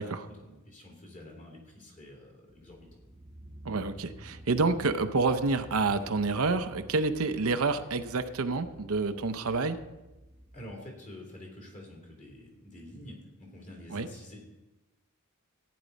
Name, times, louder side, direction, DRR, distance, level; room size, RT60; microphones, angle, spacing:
voice 1, 0.0-2.9 10.5-14.5, left 1 dB, 35° left, -2 dB, 2.9 m, -48 dB
sound 1, 2.5-10.7, equal, 10° right, 1.0 m, -51 dB
voice 2, 3.6-9.8 13.9-14.1, right 3 dB, 70° right, 9 dB, 0.7 m, -28 dB
15.0 x 9.5 x 4.1 m, 1.1 s
head